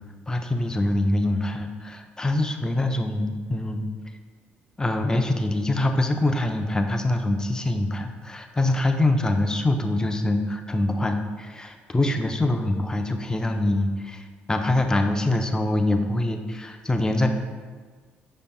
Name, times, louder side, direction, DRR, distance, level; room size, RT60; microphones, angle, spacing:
voice 1, 0.3-3.9 4.8-17.3, left 1 dB, 15° left, 6 dB, 0.4 m, -24 dB
5.3 x 4.2 x 2.2 m, 1.5 s
supercardioid pair, 70°, 5 cm